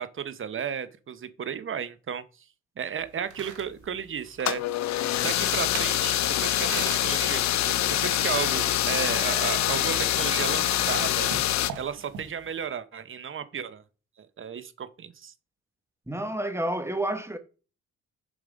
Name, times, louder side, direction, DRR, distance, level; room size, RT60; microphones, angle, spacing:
voice 1, 0.0-2.2 2.8-4.6 5.2-11.3 11.8-13.8 14.2-15.3, right 7 dB, 40° right, 0.9 m, -33 dB
sound 1, 3.0-12.7, right 8 dB, 85° right, 1.5 m, -43 dB
sound 2, 4.4-11.7, left 13 dB, 65° left, 0.6 m, -25 dB
voice 2, 16.1-17.4, right 1 dB, 10° right, 1.2 m, -29 dB
7.2 x 5.3 x 5.2 m
cardioid pair, 90°, 30 cm